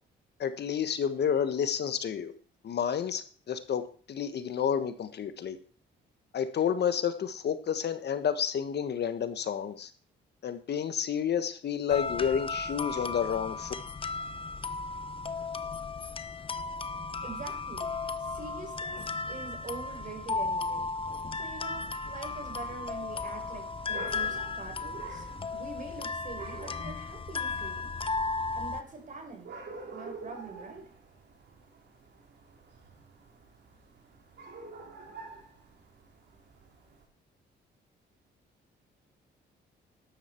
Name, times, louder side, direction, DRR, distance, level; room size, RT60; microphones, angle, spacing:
voice 1, 0.4-2.3 2.6-5.6 6.3-9.9 10.4-13.7, left 8 dB, 55° left, 11 dB, 1.3 m, -30 dB
sound 1, 11.9-28.8, left 4 dB, 25° left, 0.9 m, -35 dB
voice 2, 17.2-17.9 18.2-20.9 21.3-27.9 28.5-29.5 29.9-30.8, right 4 dB, 40° right, 4 dB, 4.5 m, -44 dB
sound 2, 22.3-37.0, right 3 dB, 60° right, 3.8 m, -48 dB
12.5 x 11.0 x 4.5 m, 0.42 s
cardioid pair, 90°, 20 cm